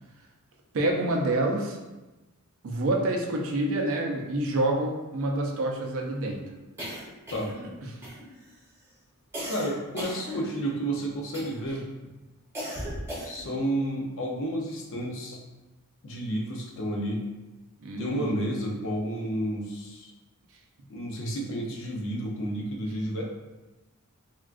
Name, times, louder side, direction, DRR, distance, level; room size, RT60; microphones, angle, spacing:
voice 1, 0.7-1.8 2.6-6.4 17.8-18.3, right 2 dB, 65° right, 1 dB, 0.5 m, -27 dB
sound 1, 6.8-7.7 8.0-8.5 9.3-10.8 11.3-11.8 12.5-13.6, equal, 10° right, 0.8 m, -37 dB
voice 2, 9.5-11.9 13.2-15.4 16.0-17.2 18.0-20.1 20.9-23.2, right 1 dB, 60° left, -1 dB, 0.6 m, -31 dB
3.5 x 2.3 x 2.4 m, 1.1 s
head